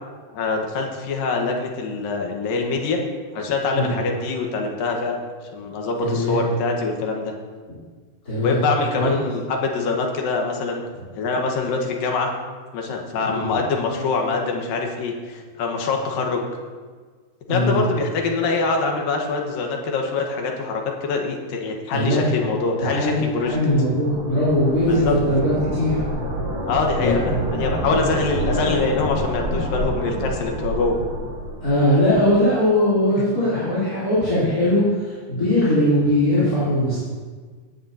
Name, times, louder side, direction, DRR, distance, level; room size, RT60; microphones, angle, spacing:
voice 1, 0.3-3.0 3.3-5.2 5.5-7.3 8.4-10.8 11.2-12.3 12.7-16.5 17.5-23.6 24.8-25.1 26.7-31.0 33.2-33.3, left 4 dB, 85° left, 1 dB, 3.1 m, -24 dB
voice 2, 6.0-6.4 8.3-8.6 9.0-9.1 13.2-13.5 17.5-17.8 21.9-22.3 22.8-26.0 27.0-27.2 31.6-37.0, left 1 dB, 25° left, -11 dB, 3.6 m, -20 dB
sound 1, 23.3-32.3, right 1 dB, 70° right, 5.5 m, -28 dB
17.5 x 10.5 x 2.9 m, 1.5 s
omnidirectional pair, 3.9 m